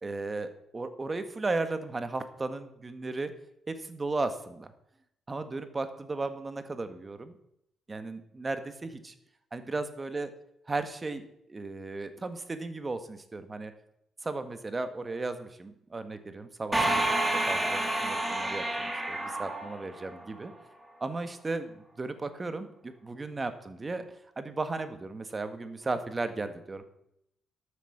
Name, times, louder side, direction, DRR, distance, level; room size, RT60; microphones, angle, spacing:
voice 1, 0.0-3.3 3.7-4.7 5.3-7.4 7.9-9.1 9.5-10.3 10.7-13.7 14.2-17.1 17.4-20.5 21.0-24.1 24.4-26.8, right 3 dB, 25° right, 9 dB, 1.7 m, -35 dB
sound 1, 16.7-20.4, right 1 dB, 10° right, 2.6 m, -29 dB
12.5 x 8.4 x 7.3 m, 0.77 s
cardioid pair, 90°, 0 cm